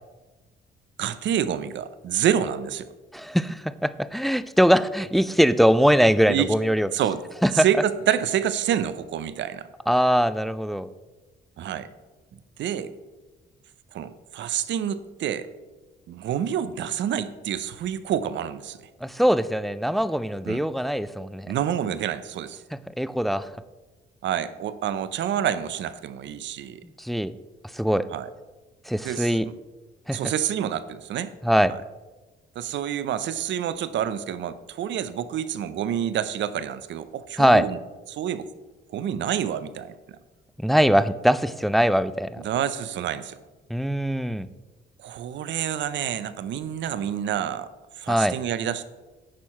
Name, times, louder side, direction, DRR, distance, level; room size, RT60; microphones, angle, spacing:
voice 1, 1.0-2.9 6.3-6.5 6.9-7.2 7.5-9.7 11.6-11.9 12.6-12.9 13.9-15.5 16.1-18.8 20.5-20.6 21.5-22.6 24.2-26.8 28.1-28.3 29.0-29.5 30.1-31.3 31.7-31.8 32.6-37.8 38.1-38.5 38.9-39.9 42.4-43.4 45.0-47.7 48.0-48.8, right 9 dB, 70° right, 13 dB, 0.6 m, -28 dB
voice 2, 3.1-6.9 7.4-7.7 9.9-10.9 19.0-21.5 23.0-23.5 27.0-27.3 27.7-28.1 28.9-29.5 30.1-30.2 31.4-31.8 37.4-37.7 40.6-42.4 43.7-44.5 48.1-48.4, equal, ahead, 14 dB, 0.3 m, -21 dB
10.0 x 4.6 x 4.3 m, 1.2 s
cardioid pair, 90°, 20 cm